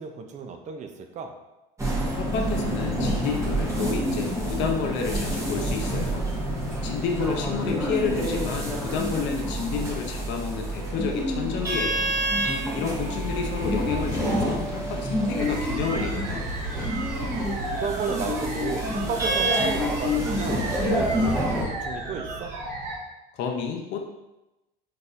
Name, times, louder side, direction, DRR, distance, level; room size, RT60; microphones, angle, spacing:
voice 1, 0.0-1.3 7.6-8.2 17.7-22.5, right 5 dB, 35° right, 5 dB, 0.4 m, -33 dB
sound 1, 1.8-21.6, equal, 15° right, 1.0 m, -27 dB
voice 2, 2.2-6.3 6.8-12.2 12.7-16.5 23.3-24.1, left 6 dB, 60° left, 2 dB, 0.5 m, -30 dB
sound 2, 15.4-23.0, right 2 dB, 60° right, 1.2 m, -33 dB
3.9 x 2.7 x 2.5 m, 0.98 s
supercardioid pair, 105°, 21 cm